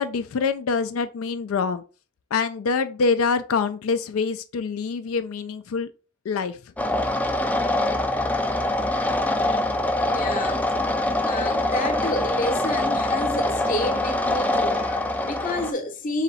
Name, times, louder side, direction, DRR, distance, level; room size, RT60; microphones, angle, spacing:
voice 1, 0.0-1.8 2.3-5.9 6.3-6.6, left 5 dB, 90° left, 0.4 m, -25 dB
sound 1, 6.8-15.7, left 1 dB, 10° left, 0.3 m, -24 dB
voice 2, 10.0-10.7 11.2-16.2, left 2 dB, 40° left, 0.8 m, -29 dB
4.0 x 2.7 x 4.0 m
head